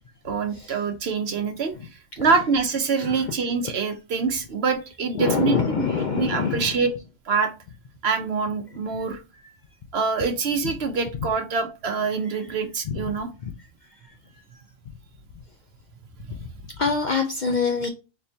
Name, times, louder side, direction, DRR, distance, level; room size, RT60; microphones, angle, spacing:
voice 1, 0.2-1.7 2.2-5.9 6.1-6.9 7.3-7.5 8.0-9.2 9.9-13.3 16.3-16.4, right 5 dB, 60° right, 6 dB, 0.9 m, -25 dB
voice 2, 3.0-3.3 5.1-6.8 12.8-13.0 13.4-13.7 14.0-14.6 16.3-16.5 16.8-17.9, left 5 dB, 55° left, 4 dB, 0.5 m, -26 dB
4.4 x 3.2 x 2.7 m, 0.28 s
omnidirectional pair, 1.3 m